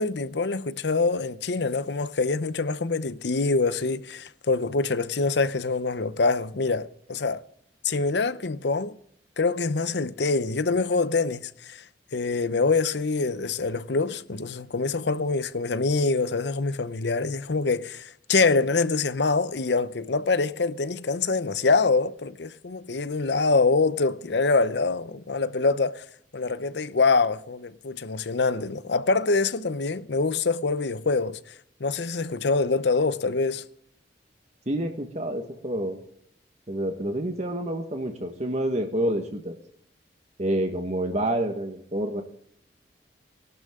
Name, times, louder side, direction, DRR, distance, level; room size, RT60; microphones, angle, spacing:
voice 1, 0.0-7.4 7.8-9.0 9.4-11.8 12.1-26.0 26.3-31.4 31.8-33.6, left 3 dB, 70° left, 0.7 m, -25 dB
voice 2, 34.7-36.0 36.7-39.5 40.4-42.2, right 1 dB, 40° right, 1.4 m, -28 dB
21.0 x 12.0 x 3.7 m
head